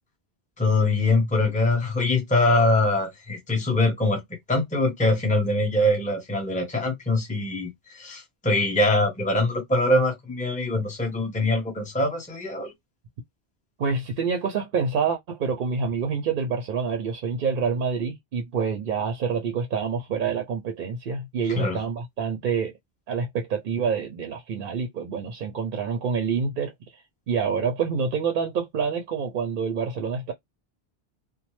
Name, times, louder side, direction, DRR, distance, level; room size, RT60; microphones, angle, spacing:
voice 1, 0.6-4.2 4.5-7.7 7.9-12.7 21.6-21.8, left 2 dB, 10° left, 0.8 m, -23 dB
voice 2, 13.8-22.8 23.1-30.3, right 5 dB, 60° right, 0.7 m, -27 dB
2.9 x 2.0 x 3.1 m
omnidirectional pair, 1.1 m